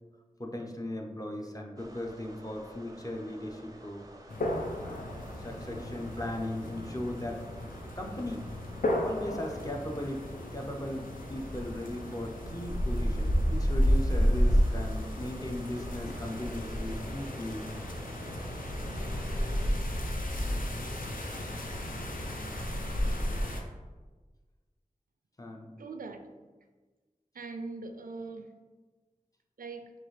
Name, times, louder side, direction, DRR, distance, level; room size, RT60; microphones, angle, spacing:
voice 1, 0.4-4.0 4.8-5.1 5.4-7.5 7.9-17.7 25.4-25.7, left 1 dB, 25° left, 2 dB, 0.6 m, -38 dB
sound 1, 1.8-19.7, right 1 dB, 25° right, 0.5 m, -51 dB
sound 2, 4.3-23.6, equal, 80° left, 0.6 m, -32 dB
voice 2, 25.8-26.3 27.3-28.5 29.6-29.9, right 3 dB, 90° right, 7 dB, 0.4 m, -41 dB
5.9 x 2.5 x 3.2 m, 1.3 s
wide cardioid pair, 45°, 14 cm